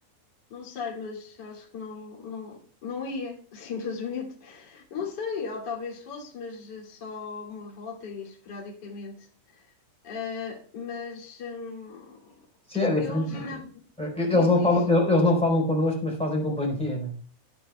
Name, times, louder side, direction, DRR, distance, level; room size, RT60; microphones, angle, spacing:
voice 1, 0.5-9.7 10.0-12.3 13.0-13.7 14.3-15.0, left 5 dB, 30° left, -2 dB, 2.6 m, -37 dB
voice 2, 12.7-13.4 14.0-17.1, left 2 dB, ahead, -1 dB, 3.3 m, -23 dB
16.5 x 10.5 x 2.3 m, 0.42 s
omnidirectional pair, 4.9 m